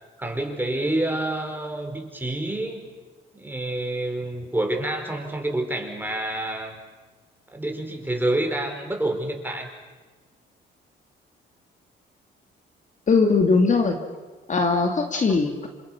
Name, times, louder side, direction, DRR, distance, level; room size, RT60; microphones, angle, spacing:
voice 1, 0.2-2.8 3.3-6.8 7.5-9.7, right 1 dB, 10° right, 3 dB, 5.3 m, -28 dB
voice 2, 13.1-14.0 14.5-15.7, left 4 dB, 40° left, 4 dB, 2.4 m, -20 dB
27.5 x 27.0 x 6.1 m, 1.4 s
cardioid pair, 90°, 20 cm